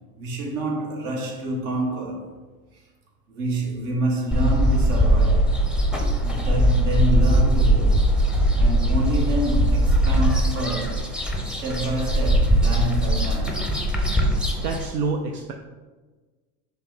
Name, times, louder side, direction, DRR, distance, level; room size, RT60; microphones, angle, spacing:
voice 1, 0.2-2.3 3.3-5.5 6.2-8.1 8.6-11.1 11.4-13.7, right 2 dB, 70° right, 1.4 m, -27 dB
sound 1, 4.3-14.9, equal, ahead, 0.5 m, -20 dB
voice 2, 14.6-15.5, right 4 dB, 90° right, 0.6 m, -27 dB
5.7 x 2.3 x 3.9 m
hypercardioid pair, 85°, 47 cm